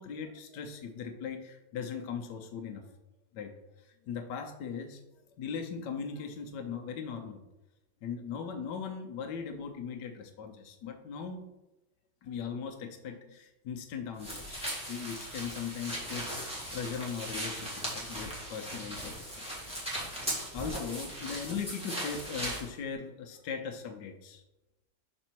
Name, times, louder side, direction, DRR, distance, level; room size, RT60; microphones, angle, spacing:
voice 1, 0.0-2.8 3.3-3.5 4.0-5.0 5.4-7.4 8.0-11.4 12.2-19.3 19.7-19.8 20.2-24.4, left 6 dB, 75° left, 4 dB, 1.4 m, -39 dB
sound 1, 14.2-22.7, equal, 5° right, 1.8 m, -38 dB
6.1 x 4.3 x 4.5 m, 1.0 s
omnidirectional pair, 1.9 m